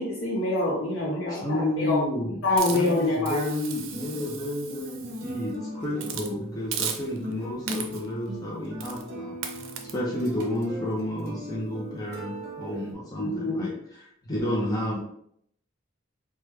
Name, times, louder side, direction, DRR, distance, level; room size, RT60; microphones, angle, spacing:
voice 1, 0.0-2.0 2.4-3.4 13.2-13.7, left 2 dB, 75° left, -4 dB, 0.6 m, -26 dB
voice 2, 1.3-9.4 9.9-15.0, left 1 dB, 20° left, -4 dB, 0.5 m, -31 dB
Hiss, 2.6-5.4 6.0-6.3 6.7-7.3 7.7-8.1 8.8-9.0 9.4-9.9, right 7 dB, 85° right, 0.5 m, -36 dB
sound 1, 3.9-12.9, equal, 55° right, 0.9 m, -39 dB
3.1 x 2.2 x 3.2 m, 0.70 s
head